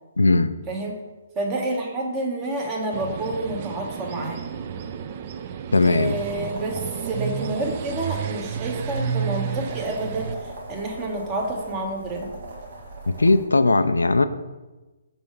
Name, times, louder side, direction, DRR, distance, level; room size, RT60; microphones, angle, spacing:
voice 1, 0.2-0.5 5.7-6.2 13.1-14.3, left 3 dB, 85° left, 11 dB, 0.3 m, -18 dB
voice 2, 0.7-1.0 1.3-4.4 5.8-12.3, right 2 dB, 25° right, 1 dB, 1.1 m, -29 dB
sound 1, 2.9-10.4, right 7 dB, 40° right, 0.4 m, -31 dB
sound 2, 6.0-13.4, right 2 dB, 65° right, 1.4 m, -40 dB
5.3 x 3.4 x 5.2 m, 1.1 s
figure-of-eight pair, 135°, 0 cm